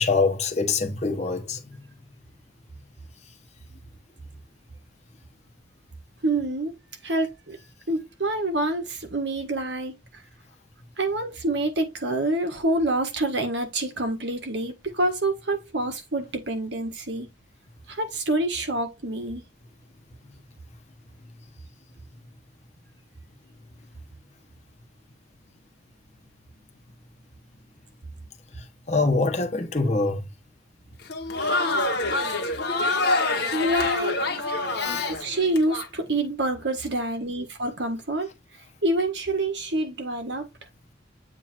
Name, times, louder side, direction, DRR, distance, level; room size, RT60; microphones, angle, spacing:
voice 1, 0.0-1.8 28.9-30.3 34.7-35.1, left 3 dB, 35° left, 1.1 m, -24 dB
voice 2, 6.2-6.7 7.0-7.6 7.9-9.9 11.0-17.3 17.9-19.4 33.5-34.2 35.1-38.3 38.8-40.5, right 2 dB, 65° right, 1.6 m, -27 dB
Crowd, 31.0-35.9, left 2 dB, 55° left, 1.3 m, -26 dB
7.6 x 2.8 x 4.4 m
head